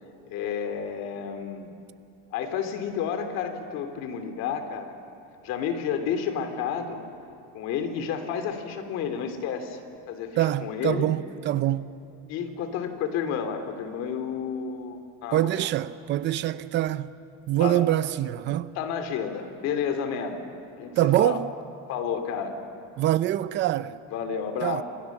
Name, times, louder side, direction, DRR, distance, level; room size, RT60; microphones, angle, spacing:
voice 1, 0.3-1.7 2.3-4.9 5.4-7.0 7.5-9.8 10.1-11.1 12.3-15.7 17.6-17.9 18.7-20.4 20.8-21.4 21.9-22.6 24.1-24.8, left 7 dB, 45° left, 2.8 m, -31 dB
voice 2, 10.4-11.9 15.3-17.1 17.5-18.7 21.0-21.5 23.0-24.0 24.6-24.8, right 13 dB, 30° right, 0.6 m, -24 dB
30.0 x 27.0 x 7.3 m
cardioid pair, 170°, 36 cm